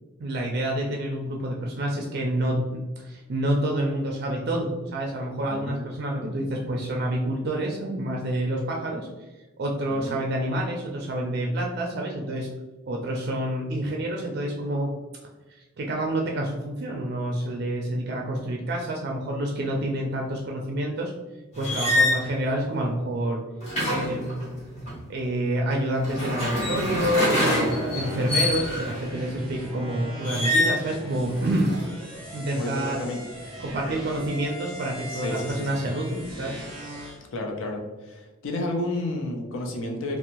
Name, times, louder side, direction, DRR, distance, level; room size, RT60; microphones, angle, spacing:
voice 1, 0.2-9.1 9.6-12.5 12.9-14.9 15.6-21.1 21.6-23.4 23.9-24.4 25.1-31.7 32.3-33.0 33.6-36.6, right 1 dB, 50° right, 0 dB, 0.3 m, -28 dB
sound 1, 21.5-22.2 23.6-24.9 25.9-29.0 30.2-30.9 31.3-31.8, left 1 dB, 35° left, 1.2 m, -25 dB
sound 2, 27.3-37.2, equal, 5° left, 0.9 m, -39 dB
voice 2, 32.6-33.2 35.1-35.8 37.3-40.2, left 2 dB, 80° left, 2 dB, 0.5 m, -31 dB
2.6 x 2.0 x 2.8 m, 1.2 s
head